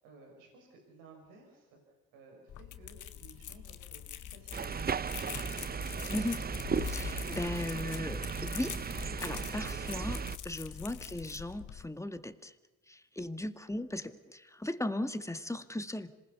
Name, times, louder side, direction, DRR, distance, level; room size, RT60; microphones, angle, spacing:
voice 1, 0.0-1.8 2.1-5.6 10.9-11.1, right 3 dB, 85° right, 1 dB, 5.7 m, -57 dB
sound 1, 2.5-11.9, left 10 dB, 65° left, 1.5 m, -44 dB
sound 2, 4.5-10.4, right 6 dB, 30° right, 0.7 m, -36 dB
voice 2, 6.1-6.4 6.9-8.7 9.0-12.5 12.9-16.1, left 1 dB, 10° left, 9 dB, 1.9 m, -37 dB
26.5 x 20.0 x 6.9 m, 1.2 s
supercardioid pair, 60°, 33 cm